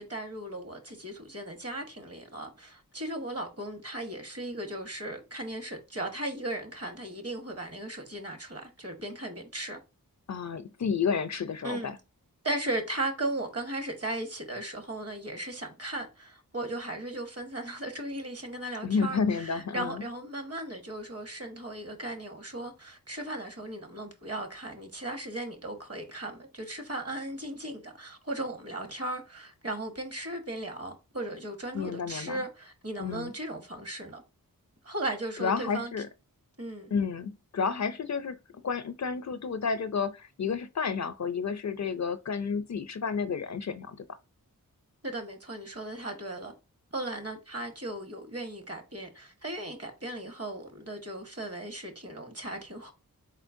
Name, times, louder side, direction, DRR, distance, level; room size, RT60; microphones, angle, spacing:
voice 1, 0.0-9.8 11.6-11.9 12.4-34.2 34.8-35.9 36.6-36.9 45.0-46.5 46.9-52.9, right 1 dB, 45° right, 1.4 m, -37 dB
voice 2, 10.3-12.0 18.8-20.0 31.7-32.4 33.0-33.3 35.4-36.1 36.9-38.4 38.6-44.0, left 5 dB, 50° left, 0.5 m, -31 dB
4.3 x 4.2 x 2.6 m
wide cardioid pair, 55°, 35 cm